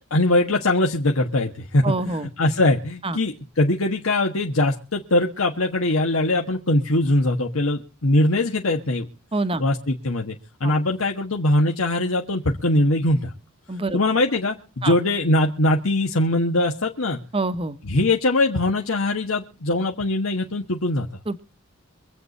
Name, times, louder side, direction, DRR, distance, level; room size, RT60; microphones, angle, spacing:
voice 1, 0.1-9.1 9.6-13.3 13.9-17.2 17.8-21.1, left 1 dB, 85° left, 1 dB, 1.5 m, -22 dB
voice 2, 1.8-2.3 3.0-3.2 9.3-9.6 10.6-10.7 13.7-14.0 14.8-14.9 17.3-17.8 21.3-21.4, right 2 dB, 25° right, 12 dB, 0.9 m, -26 dB
25.0 x 8.3 x 4.2 m, 0.37 s
head